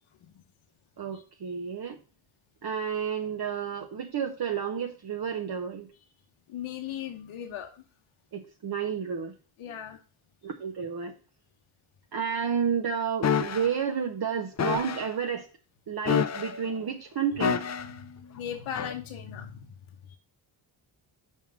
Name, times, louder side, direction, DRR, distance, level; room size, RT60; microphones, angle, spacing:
voice 1, 1.0-2.0 2.6-5.9 8.3-9.3 10.4-11.1 12.1-15.5 15.9-17.7, right 7 dB, 50° right, 3 dB, 0.9 m, -31 dB
voice 2, 6.5-7.8 9.6-10.0 18.0-19.7 20.1-20.2, left 9 dB, 85° left, 5 dB, 0.8 m, -38 dB
sound 1, 13.2-13.7 14.6-15.1 16.1-16.7 17.4-18.0 18.8-18.9, left 7 dB, 35° left, 0.5 m, -27 dB
5.7 x 4.5 x 6.0 m, 0.36 s
cardioid pair, 80°, 48 cm